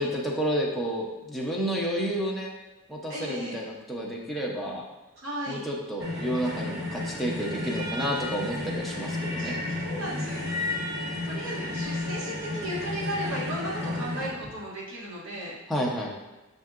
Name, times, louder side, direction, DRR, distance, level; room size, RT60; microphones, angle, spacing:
voice 1, 0.0-2.5 2.9-4.8 5.5-9.6 15.7-16.2, equal, ahead, -3 dB, 0.6 m, -30 dB
voice 2, 3.1-3.6 5.2-5.6 9.4-9.5 9.8-10.4 11.2-15.5, equal, 80° right, -6 dB, 1.5 m, -35 dB
sound 1, 6.0-14.3, left 2 dB, 60° right, 1.5 m, -32 dB
6.8 x 2.7 x 2.4 m, 1.1 s
head